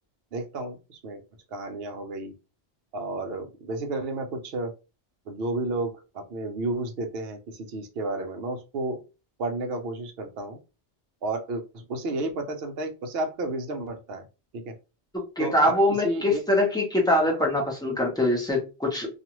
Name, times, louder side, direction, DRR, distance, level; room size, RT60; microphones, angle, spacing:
voice 1, 0.3-1.2 1.5-2.3 2.9-4.7 5.3-9.0 9.4-10.6 11.2-14.2 14.5-14.8 15.4-16.4 17.4-17.5, right 2 dB, 65° right, 4 dB, 0.9 m, -32 dB
voice 2, 15.1-19.1, left 1 dB, 5° left, -1 dB, 0.7 m, -23 dB
2.5 x 2.4 x 2.9 m, 0.29 s
omnidirectional pair, 1.2 m